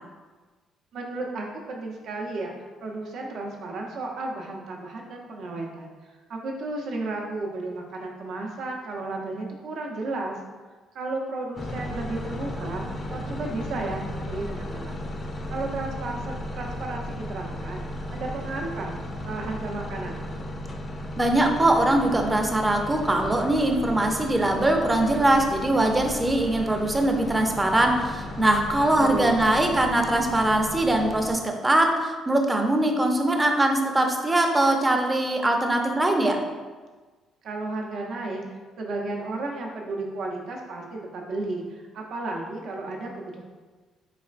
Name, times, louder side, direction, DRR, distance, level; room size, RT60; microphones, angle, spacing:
voice 1, 0.9-2.5 2.8-5.9 6.3-10.4 10.9-12.8 13.1-15.0 15.5-17.8 18.1-18.9 19.2-20.2 29.0-29.4 37.4-43.4, right 2 dB, 70° right, 0 dB, 0.6 m, -33 dB
sound 1, 11.6-31.3, left 1 dB, 35° left, 0.4 m, -35 dB
voice 2, 21.2-36.4, right 1 dB, 15° right, 3 dB, 0.5 m, -22 dB
4.1 x 3.1 x 2.4 m, 1.4 s
cardioid pair, 90°, 0 cm